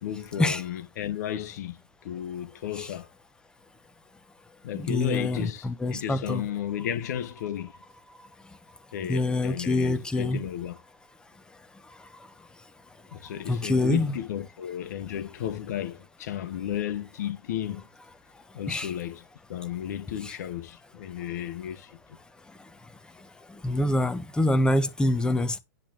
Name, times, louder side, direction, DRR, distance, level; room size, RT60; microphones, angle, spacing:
voice 1, 0.0-1.8 2.0-3.1 4.6-7.7 8.9-10.8 13.1-17.8 18.5-21.9, left 10 dB, 60° left, 1.4 m, -33 dB
voice 2, 4.7-6.4 9.1-10.4 13.5-14.1 18.7-18.9 23.6-25.6, left 2 dB, 10° left, 1.2 m, -25 dB
10.0 x 3.7 x 7.1 m
hypercardioid pair, 110°, 10 cm